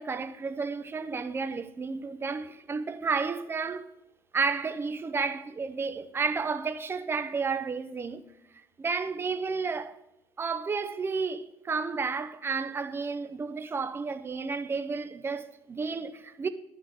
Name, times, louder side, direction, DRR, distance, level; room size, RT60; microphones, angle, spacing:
voice 1, 0.0-3.9 4.3-8.2 8.8-10.0 10.4-16.5, right 4 dB, 25° right, 0.7 m, -31 dB
10.5 x 3.8 x 6.3 m
supercardioid pair, 95°, 9 cm